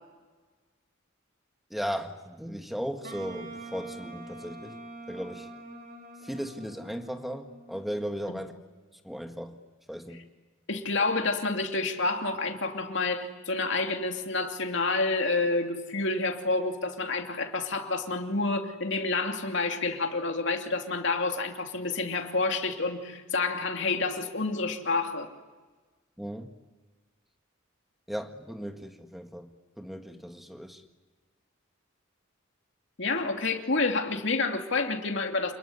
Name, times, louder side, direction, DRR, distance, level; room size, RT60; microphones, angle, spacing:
voice 1, 1.7-4.8 5.1-5.5 6.2-8.5 9.0-9.6 9.9-10.2 26.2-26.5 28.1-29.5 29.8-30.8, equal, ahead, 5 dB, 1.8 m, -36 dB
Wind instrument woodwind instrument, 3.0-8.0, right 2 dB, 45° right, 4.5 m, -45 dB
voice 2, 10.7-25.3 33.0-35.5, left 3 dB, 55° left, 3 dB, 2.8 m, -29 dB
28.5 x 21.0 x 9.8 m, 1.3 s
head